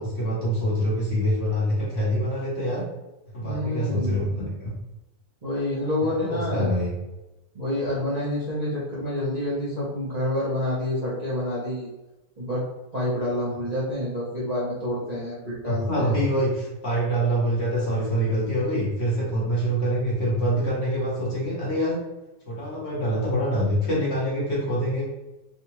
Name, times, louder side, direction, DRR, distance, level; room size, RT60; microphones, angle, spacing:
voice 1, 0.0-2.8 3.3-4.7 6.0-6.9 15.6-22.0 22.5-25.1, equal, 50° left, -5 dB, 1.3 m, -25 dB
voice 2, 3.4-4.3 5.4-6.7 7.5-11.9 12.4-12.6 12.9-16.1, left 1 dB, 30° right, -9 dB, 0.9 m, -28 dB
3.7 x 2.4 x 3.0 m, 1.0 s
omnidirectional pair, 1.6 m